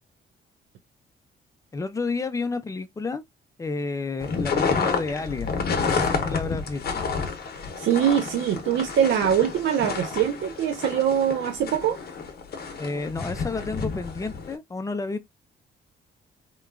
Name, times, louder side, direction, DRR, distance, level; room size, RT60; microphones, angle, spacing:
voice 1, 1.7-3.2 3.6-5.6 5.8-7.0 12.8-15.2, left 3 dB, 15° left, 0.4 m, -30 dB
sound 1, 4.2-14.5, left 5 dB, 50° left, 0.7 m, -30 dB
voice 2, 7.8-12.0, right 9 dB, 65° right, 0.4 m, -23 dB
2.9 x 2.2 x 2.3 m
cardioid pair, 90°, 20 cm